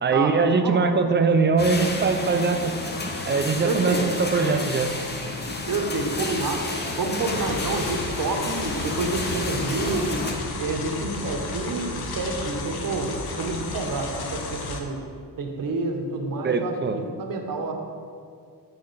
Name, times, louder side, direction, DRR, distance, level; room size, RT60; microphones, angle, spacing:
voice 1, 0.0-2.7 3.3-4.9 16.4-17.0, right 4 dB, 30° right, 7 dB, 0.4 m, -22 dB
sound 1, 1.6-10.3, left 2 dB, 25° left, 0.7 m, -31 dB
voice 2, 3.6-4.0 5.7-6.7 7.0-13.1 13.4-15.0 15.4-17.7, right 3 dB, 60° right, 2 dB, 0.9 m, -28 dB
sound 2, 7.2-14.8, left 3 dB, 75° left, 0.8 m, -33 dB
8.6 x 4.2 x 3.9 m, 2.2 s
wide cardioid pair, 135°, 38 cm